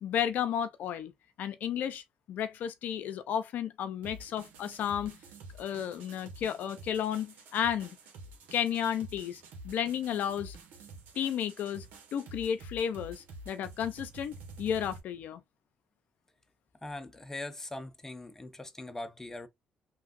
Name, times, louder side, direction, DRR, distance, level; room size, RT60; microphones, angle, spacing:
voice 1, 0.0-1.1 1.4-5.2 5.6-8.0 8.5-10.6 11.2-11.9 12.1-15.4, left 9 dB, 70° left, 0.4 m, -33 dB
sound 1, 4.0-15.0, right 3 dB, 80° right, 1.0 m, -49 dB
voice 2, 16.8-19.5, left 2 dB, 15° left, 0.6 m, -41 dB
3.2 x 2.3 x 2.5 m
supercardioid pair, 70°, 3 cm